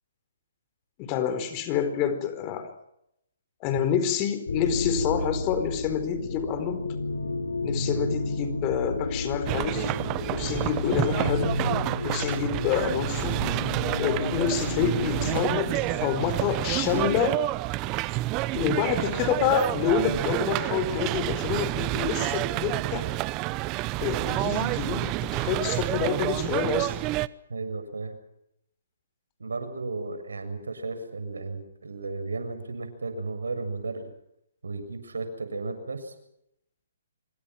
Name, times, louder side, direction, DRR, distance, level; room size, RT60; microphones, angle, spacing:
voice 1, 1.0-2.7 3.6-6.9 7.6-9.9 10.3-11.6 12.0-13.4 14.0-17.4 18.5-23.1 24.0-27.0, left 8 dB, 30° left, 10 dB, 4.3 m, -28 dB
sound 1, 4.5-16.4, left 2 dB, 80° left, 5.5 m, -31 dB
sound 2, 9.5-27.3, right 19 dB, 25° right, 0.9 m, -29 dB
voice 2, 27.5-28.2 29.4-34.1 34.6-36.1, right 3 dB, 80° right, 9 dB, 7.0 m, -34 dB
26.5 x 24.5 x 6.1 m, 0.79 s
hypercardioid pair, 140°, 0 cm